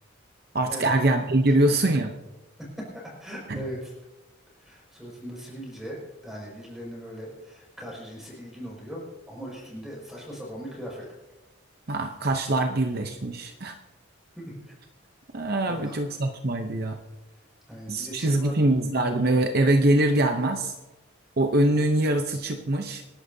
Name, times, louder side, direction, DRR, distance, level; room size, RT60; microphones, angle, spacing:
voice 1, 0.5-2.1 3.5-3.6 11.9-13.7 15.3-17.0 17.9-20.7 21.4-23.0, right 1 dB, 50° right, 5 dB, 0.8 m, -23 dB
voice 2, 2.8-3.9 4.6-11.1 14.4-14.8 15.7-16.0 17.7-18.5, equal, ahead, -3 dB, 5.6 m, -39 dB
27.0 x 11.5 x 2.8 m, 1.0 s
head